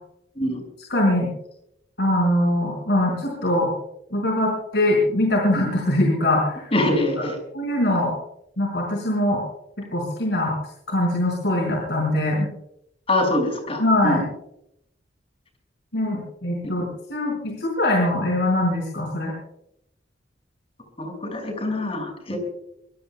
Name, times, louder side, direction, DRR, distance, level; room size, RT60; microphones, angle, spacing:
voice 1, 0.9-1.3 2.0-3.7 4.1-6.7 7.5-8.1 8.6-9.4 9.9-10.6 10.9-12.5 13.8-14.2 15.9-19.3 22.3-22.4, left 1 dB, 65° left, -1 dB, 5.2 m, -22 dB
voice 2, 6.7-7.4 13.1-14.2 21.0-22.4, left 1 dB, 30° left, 3 dB, 5.9 m, -24 dB
24.5 x 23.5 x 2.3 m, 0.78 s
head